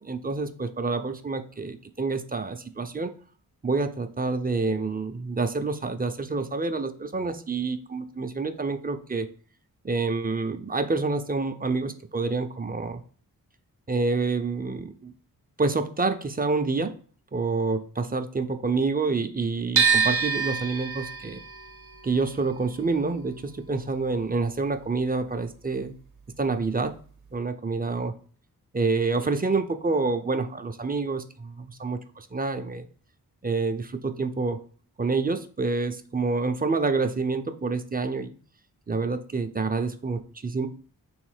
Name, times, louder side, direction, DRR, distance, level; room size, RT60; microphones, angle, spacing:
voice 1, 0.0-3.1 3.6-9.3 9.8-13.0 13.9-15.1 15.6-16.9 17.3-21.4 22.0-25.9 26.4-26.9 27.3-28.1 28.7-32.9 33.4-34.6 35.0-38.3 38.9-40.7, right 3 dB, 25° right, 8 dB, 0.5 m, -27 dB
sound 1, 19.8-25.8 26.1-27.4, right 6 dB, 55° right, 0.8 m, -28 dB
3.4 x 3.2 x 4.8 m, 0.43 s
cardioid pair, 60°, 36 cm